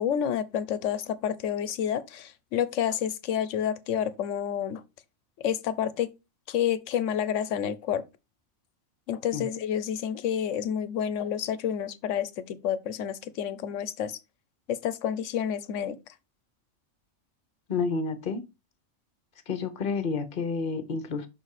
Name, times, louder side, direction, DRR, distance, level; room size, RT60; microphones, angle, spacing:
voice 1, 0.0-4.8 5.4-6.1 6.5-8.0 9.1-14.2 14.7-16.0, left 9 dB, 80° left, 1.0 m, -29 dB
voice 2, 17.7-18.4 19.5-21.3, left 4 dB, 45° left, 1.0 m, -30 dB
6.0 x 4.1 x 4.7 m
omnidirectional pair, 1.3 m